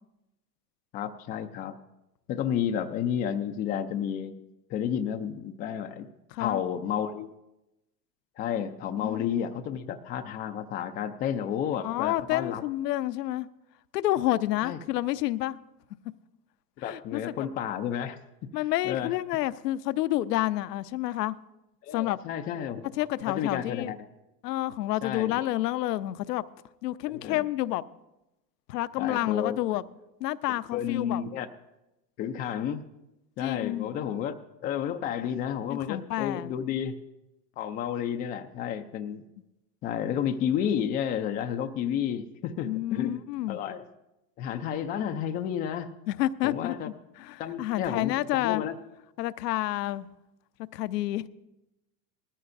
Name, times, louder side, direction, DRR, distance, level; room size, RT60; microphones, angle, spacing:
voice 1, 0.9-1.7 2.3-4.4 4.7-6.1 6.4-7.3 8.4-12.6 14.6-14.8 16.8-18.2 18.8-19.1 21.8-22.8 23.3-24.0 25.0-25.4 27.1-27.4 29.0-29.6 30.7-31.5 32.2-32.8 33.4-36.9 37.6-39.2 39.8-43.2 43.5-43.8 44.4-45.9 46.4-46.9 47.4-48.8, left 9 dB, 20° left, 0.3 m, -31 dB
voice 2, 6.3-6.6 9.0-9.3 11.8-13.5 13.9-15.6 16.8-17.5 18.5-21.4 21.9-22.2 22.9-23.9 24.4-26.4 26.8-27.8 28.7-29.8 30.2-31.2 33.4-33.9 35.7-36.5 42.6-43.6 46.1-48.6 49.2-50.1 50.7-51.3, left 15 dB, 75° left, 0.7 m, -29 dB
19.5 x 14.0 x 2.6 m
hypercardioid pair, 110°, 49 cm